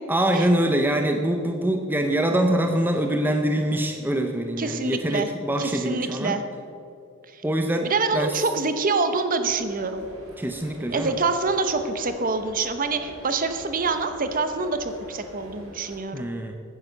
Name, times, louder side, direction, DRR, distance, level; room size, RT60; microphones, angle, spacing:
voice 1, 0.1-6.4 7.4-8.4 10.4-11.2 16.1-16.5, right 1 dB, 10° right, 4 dB, 0.6 m, -24 dB
voice 2, 4.6-5.3 5.6-6.4 7.3-7.4 7.8-10.1 10.9-16.2, right 3 dB, 40° right, 9 dB, 0.9 m, -26 dB
sound 1, 9.4-16.0, equal, 70° right, 3.3 m, -45 dB
10.5 x 9.8 x 6.6 m, 2.6 s
head